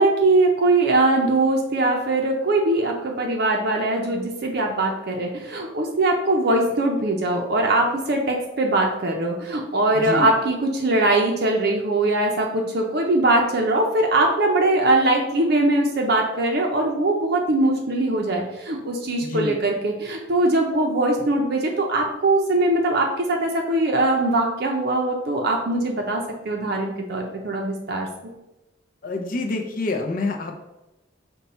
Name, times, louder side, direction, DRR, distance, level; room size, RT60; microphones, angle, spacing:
voice 1, 0.0-28.1, right 2 dB, 50° right, 1 dB, 0.5 m, -21 dB
voice 2, 19.2-19.6 29.0-30.6, left 2 dB, 40° left, 3 dB, 0.6 m, -27 dB
5.4 x 2.2 x 4.2 m, 0.97 s
head